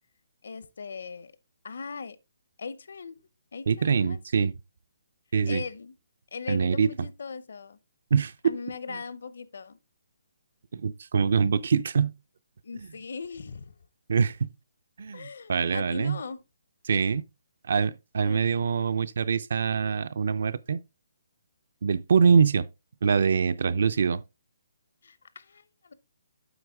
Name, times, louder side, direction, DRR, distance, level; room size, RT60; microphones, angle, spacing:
voice 1, 0.4-1.3 1.6-2.2 2.6-3.2 3.5-4.2 5.5-5.9 6.3-7.8 8.4-9.8 12.6-13.8 15.1-16.4 18.2-18.7 25.0-25.9, left 5 dB, 60° left, 0.6 m, -39 dB
voice 2, 3.7-4.5 5.3-5.6 6.5-6.9 8.1-8.3 8.9-9.0 10.7-12.1 14.1-14.5 15.0-16.2 16.8-17.2 17.7-20.8 21.8-22.7 23.0-24.2, right 6 dB, 50° right, 0.4 m, -24 dB
8.0 x 4.8 x 3.4 m
hypercardioid pair, 175°, 0 cm